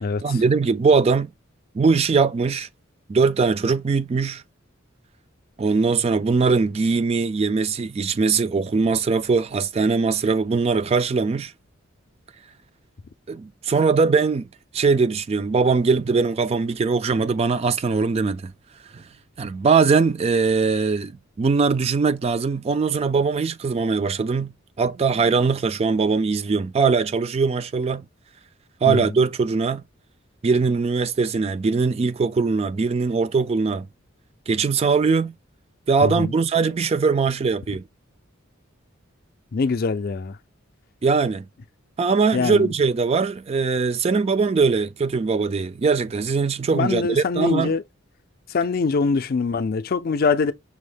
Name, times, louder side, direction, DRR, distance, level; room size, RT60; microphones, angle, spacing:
voice 1, 0.2-1.3 1.7-2.7 3.1-4.4 5.6-11.5 13.3-14.5 14.7-18.5 18.9-19.0 19.4-28.0 28.8-29.8 30.4-33.9 34.5-35.3 35.9-37.8 41.0-41.4 42.0-47.8, right 4 dB, 30° right, 0.3 m, -21 dB
voice 2, 36.0-36.3 39.5-40.4 42.3-42.7 46.7-47.8 48.5-50.5, left 4 dB, 50° left, 0.4 m, -23 dB
6.1 x 2.1 x 3.3 m
head